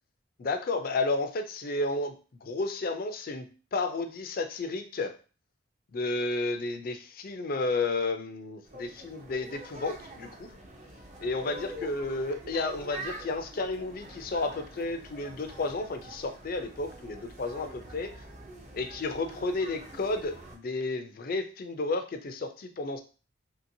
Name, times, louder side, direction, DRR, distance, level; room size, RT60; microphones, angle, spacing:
voice 1, 0.4-2.1 2.4-3.5 3.7-5.1 5.9-10.5 11.2-18.1 18.7-23.0, left 3 dB, 45° left, 7 dB, 0.4 m, -32 dB
sound 1, 8.6-20.6, right 1 dB, 35° right, 0.5 m, -46 dB
2.9 x 2.8 x 2.6 m, 0.36 s
head